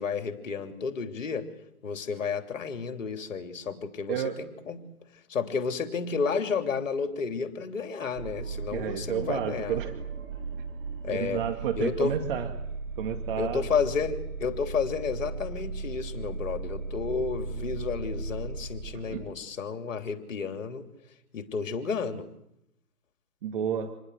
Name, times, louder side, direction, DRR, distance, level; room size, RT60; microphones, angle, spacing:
voice 1, 0.0-1.5 1.8-4.8 5.3-9.8 11.0-11.4 11.8-12.2 13.4-20.9 21.3-22.3, left 5 dB, 55° left, 7 dB, 3.3 m, -31 dB
sound 1, 8.1-19.3, right 4 dB, 60° right, 6.3 m, -37 dB
voice 2, 8.7-10.0 11.1-12.5 13.0-13.6 19.1-19.2 23.4-23.9, right 9 dB, 35° right, 7 dB, 2.2 m, -31 dB
27.0 x 21.0 x 8.2 m, 0.83 s
figure-of-eight pair, 145°, 46 cm